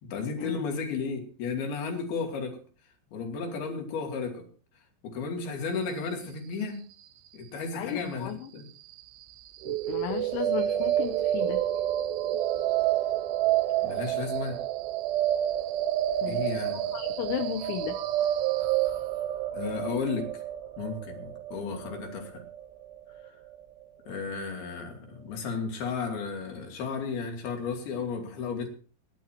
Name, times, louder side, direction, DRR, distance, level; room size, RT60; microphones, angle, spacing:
voice 1, 0.0-2.6 3.1-4.5 5.0-6.8 7.3-8.7 13.8-14.6 16.3-16.9 19.5-20.4 20.8-22.4 24.1-28.7, left 5 dB, 55° left, 2 dB, 4.4 m, -33 dB
voice 2, 7.7-8.5 9.7-11.6 16.2-16.4 16.7-18.0, left 10 dB, 75° left, 6 dB, 3.1 m, -34 dB
sound 1, 9.6-23.6, right 12 dB, 80° right, 3.1 m, -29 dB
23.5 x 11.5 x 2.9 m, 0.40 s
omnidirectional pair, 5.8 m